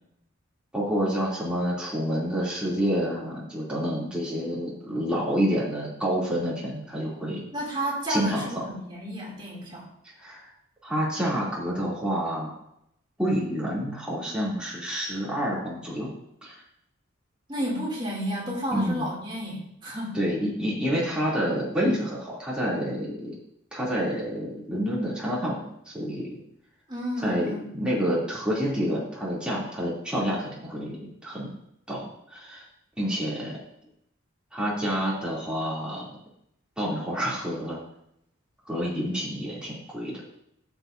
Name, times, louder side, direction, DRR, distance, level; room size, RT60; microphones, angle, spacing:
voice 1, 0.7-7.4 8.1-8.5 10.2-10.5 10.8-12.5 13.2-16.1 16.4-16.5 18.7-19.0 20.1-23.3 23.7-26.4 27.2-31.6 31.9-32.6 33.0-33.6 34.5-36.1 36.8-37.8 38.7-40.2, equal, 5° right, -7 dB, 2.7 m, -28 dB
voice 2, 7.5-9.9 17.5-20.2 26.9-27.7, equal, 20° right, -3 dB, 2.6 m, -31 dB
14.0 x 7.4 x 2.6 m, 0.77 s
head